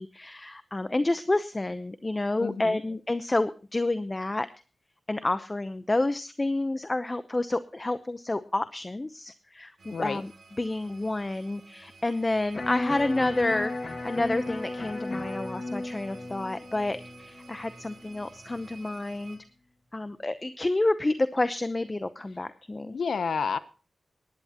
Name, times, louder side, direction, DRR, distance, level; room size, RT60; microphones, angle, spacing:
voice 1, 0.0-4.5 5.1-10.3 10.6-19.4 19.9-22.9, left 2 dB, 25° left, 12 dB, 0.8 m, -29 dB
voice 2, 2.4-2.8 9.9-10.2 22.9-23.6, left 5 dB, 80° left, 13 dB, 0.7 m, -30 dB
sound 1, 9.8-19.4, right 4 dB, 70° right, 3.1 m, -52 dB
Electric guitar, 12.5-18.6, left 2 dB, 50° left, 2.2 m, -36 dB
19.5 x 10.5 x 2.9 m, 0.34 s
cardioid pair, 65°, 0 cm